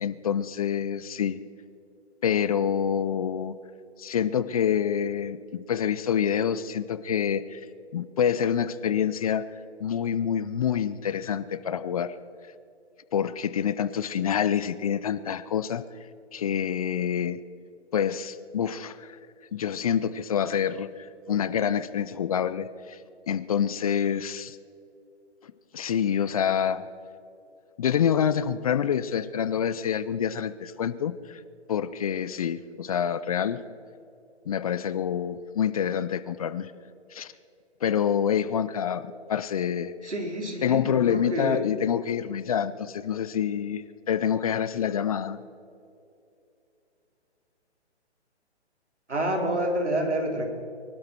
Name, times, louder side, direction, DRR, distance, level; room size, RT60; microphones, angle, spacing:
voice 1, 0.0-1.4 2.2-3.5 4.0-7.7 7.9-9.5 9.8-12.1 13.1-15.8 16.3-17.4 17.9-19.2 19.5-23.0 23.3-24.6 25.4-26.9 27.8-31.4 31.7-33.6 34.5-36.7 37.1-37.3 37.8-40.1 40.6-45.4, left 8 dB, 35° left, 15 dB, 0.5 m, -27 dB
voice 2, 40.0-41.6 49.1-50.5, right 1 dB, 85° right, 1 dB, 4.3 m, -28 dB
24.0 x 12.5 x 4.6 m, 2.6 s
figure-of-eight pair, 140°, 34 cm